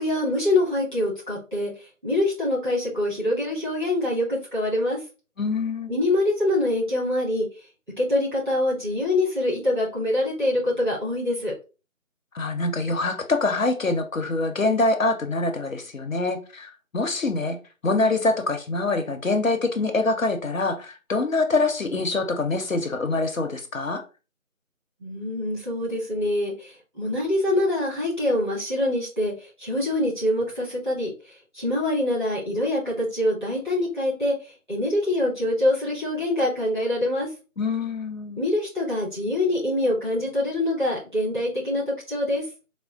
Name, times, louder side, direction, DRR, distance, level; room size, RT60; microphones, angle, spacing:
voice 1, 0.0-5.0 5.9-7.4 8.0-11.5 25.0-37.3 38.4-42.4, left 1 dB, 35° right, -8 dB, 1.7 m, -25 dB
voice 2, 5.4-5.9 12.3-17.6 17.8-24.0 37.6-38.4, left 3 dB, 65° left, 6 dB, 0.6 m, -25 dB
4.2 x 2.2 x 2.3 m, 0.32 s
figure-of-eight pair, 175°, 43 cm